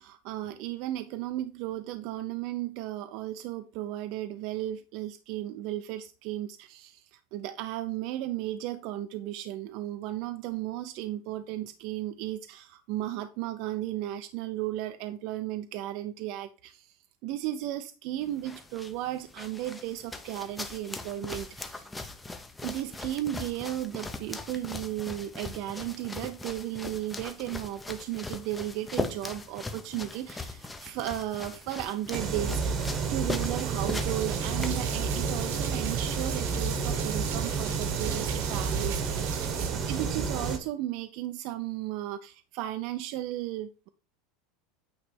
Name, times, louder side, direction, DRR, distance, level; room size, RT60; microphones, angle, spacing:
voice 1, 0.0-17.0 17.2-21.9 22.6-43.9, right 13 dB, 45° right, 0.5 m, -35 dB
sound 1, 18.2-35.2, left 2 dB, 5° left, 0.6 m, -40 dB
sound 2, 32.1-40.6, right 5 dB, 30° right, 1.0 m, -30 dB
sound 3, 33.1-39.7, right 9 dB, 75° right, 1.2 m, -40 dB
8.8 x 3.2 x 4.6 m
supercardioid pair, 165°, 0 cm